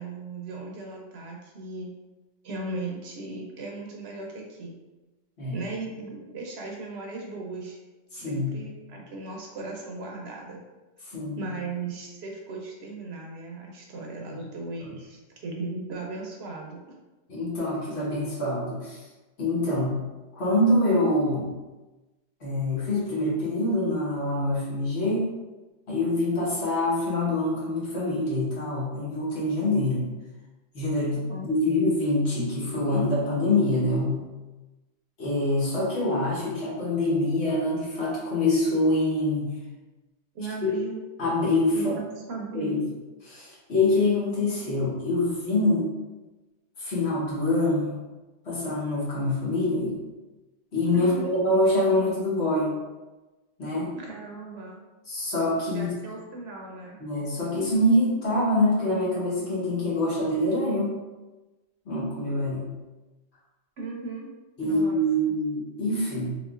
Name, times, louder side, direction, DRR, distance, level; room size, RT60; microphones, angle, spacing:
voice 1, 0.0-1.9 2.4-4.8 5.5-7.8 8.1-10.6 11.4-16.8 31.0-31.5 40.3-41.0 41.7-42.0 42.3-42.8 50.9-51.3 53.9-54.8 55.7-57.0 63.8-64.3 64.6-65.0, right 3 dB, 70° right, -1 dB, 0.9 m, -37 dB
voice 2, 8.1-8.6 11.0-11.5 14.3-14.4 17.3-19.1 19.4-20.0 20.3-21.5 22.4-25.3 25.9-30.1 30.7-34.2 35.2-39.5 40.6-40.7 41.2-41.8 42.5-42.8 43.2-45.8 46.8-47.9 48.4-50.0 50.7-52.7 53.6-53.9 55.1-55.9 57.0-61.0 61.8-62.7 64.6-66.3, left 1 dB, 70° left, -6 dB, 1.4 m, -25 dB
3.4 x 3.1 x 2.4 m, 1.1 s
omnidirectional pair, 1.2 m